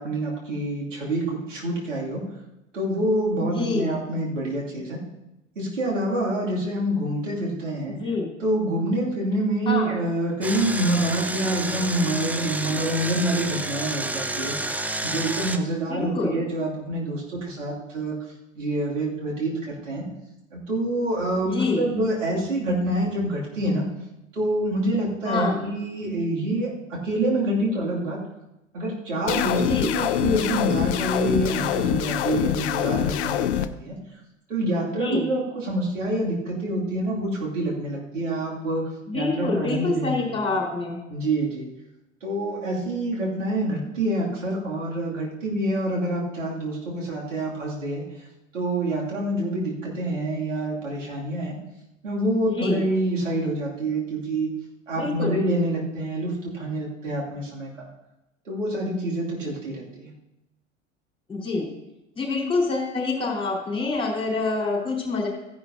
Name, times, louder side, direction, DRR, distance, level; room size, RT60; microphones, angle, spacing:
voice 1, 0.0-2.3 2.7-5.0 5.6-8.0 8.4-14.8 15.0-18.2 18.6-20.1 20.5-23.9 24.3-28.2 28.7-34.0 34.5-38.8 39.1-40.2 41.1-41.7 42.2-48.3 48.5-51.5 52.0-54.5 54.9-57.7 58.4-60.1, right 1 dB, 75° right, -4 dB, 2.7 m, -26 dB
voice 2, 3.4-4.0 7.8-8.3 9.7-9.9 15.9-16.4 21.4-21.9 25.2-25.6 29.6-30.0 35.0-35.3 39.1-41.0 52.5-52.8 54.9-55.4 61.3-61.7 62.1-65.3, left 3 dB, 15° left, -1 dB, 4.1 m, -26 dB
Engine, 10.4-15.6, right 2 dB, 5° right, 0.5 m, -29 dB
sound 1, 29.3-33.7, left 11 dB, 60° left, 0.6 m, -25 dB
15.5 x 10.5 x 2.8 m, 0.92 s
figure-of-eight pair, 75°, 38 cm